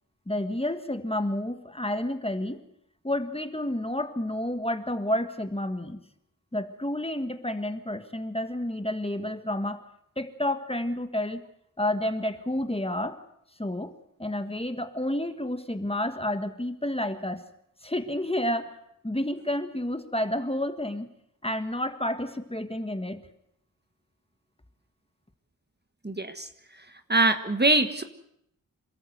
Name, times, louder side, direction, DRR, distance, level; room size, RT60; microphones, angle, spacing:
voice 1, 0.3-2.6 3.0-6.0 6.5-9.8 10.2-11.4 11.8-13.2 13.6-13.9 14.2-17.4 17.8-18.7 19.0-21.1 21.4-23.2, left 1 dB, 15° left, 8 dB, 1.6 m, -30 dB
voice 2, 26.0-26.5 27.1-28.0, right 2 dB, 30° right, 8 dB, 1.5 m, -23 dB
27.5 x 14.0 x 8.0 m, 0.76 s
wide cardioid pair, 65°, 34 cm